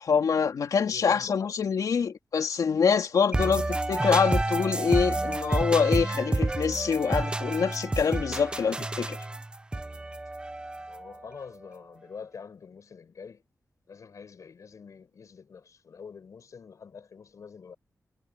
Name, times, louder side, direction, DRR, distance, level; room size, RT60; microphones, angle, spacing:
voice 1, 0.0-9.2, left 6 dB, 85° left, 3.0 m, -25 dB
voice 2, 0.7-1.5 10.9-13.4 13.9-17.8, left 6 dB, 65° left, 6.3 m, -45 dB
sound 1, 3.3-11.2, right 2 dB, 15° right, 0.6 m, -29 dB
wide cardioid pair, 155°, 6 cm